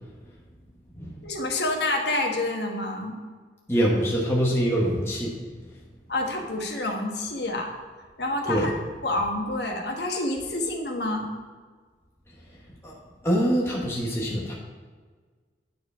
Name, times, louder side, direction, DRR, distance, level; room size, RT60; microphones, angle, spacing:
voice 1, 1.2-3.1 6.1-7.7 8.2-11.3, left 2 dB, 70° left, 1 dB, 1.2 m, -28 dB
voice 2, 3.7-5.3 8.5-8.7 12.8-12.9 13.2-14.5, equal, 15° left, -4 dB, 1.1 m, -24 dB
9.1 x 4.8 x 5.4 m, 1.5 s
head